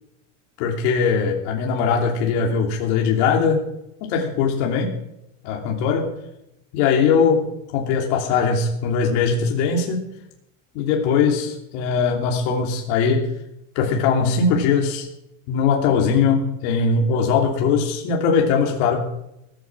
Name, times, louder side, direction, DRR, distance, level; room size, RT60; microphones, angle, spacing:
voice 1, 0.6-3.6 4.0-4.9 5.4-6.1 6.7-7.4 7.7-10.0 10.7-13.3 13.7-15.1 15.5-19.0, left 5 dB, 65° left, 0 dB, 3.0 m, -20 dB
19.0 x 9.0 x 7.6 m, 0.84 s
cardioid pair, 175°, 38 cm